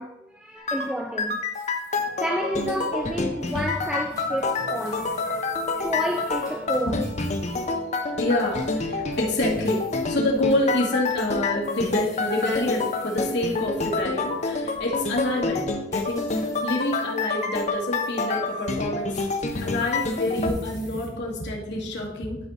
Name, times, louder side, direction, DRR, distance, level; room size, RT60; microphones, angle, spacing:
voice 1, 0.0-1.4 2.2-7.0 9.0-9.2, equal, 5° right, 0.3 m, -30 dB
sound 1, 0.7-20.5, left 3 dB, 35° left, 0.7 m, -28 dB
sound 2, 1.4-2.2 2.6-3.1 3.4-7.8 8.4-14.9 15.2-15.4 15.9-17.6 18.1-18.2 18.7-21.1, left 3 dB, 15° left, 2.3 m, -50 dB
sound 3, 2.0-17.7, right 1 dB, 85° right, 0.8 m, -43 dB
voice 2, 8.2-15.6 15.9-16.3 16.6-22.5, left 1 dB, 60° left, 2.0 m, -27 dB
11.5 x 4.6 x 4.1 m
head